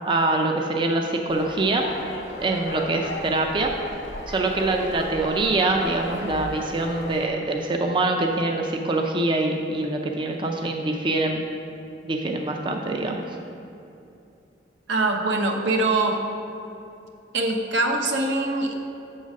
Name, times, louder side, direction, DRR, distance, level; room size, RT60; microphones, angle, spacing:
voice 1, 0.0-1.8 2.4-3.7 4.3-11.4 12.0-13.2, right 2 dB, 30° right, 2 dB, 0.4 m, -24 dB
sound 1, 1.3-7.3, left 1 dB, 80° left, 0.9 m, -36 dB
voice 2, 14.9-16.2 17.3-18.7, right 2 dB, 80° right, 3 dB, 0.8 m, -23 dB
7.0 x 3.9 x 6.3 m, 2.7 s
head